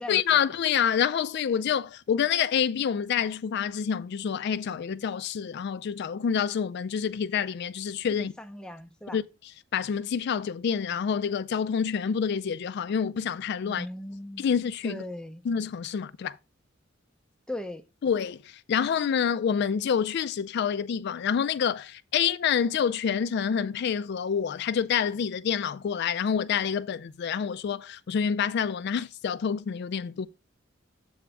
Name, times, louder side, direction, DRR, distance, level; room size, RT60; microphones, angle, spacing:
voice 1, 0.1-8.3 9.1-13.9 14.4-15.0 15.4-16.4 18.0-30.3, left 7 dB, 60° left, 0.3 m, -27 dB
voice 2, 8.2-9.2 13.6-14.5 14.8-15.4 17.5-17.8, left 1 dB, 5° left, 0.5 m, -38 dB
7.9 x 3.3 x 6.0 m
head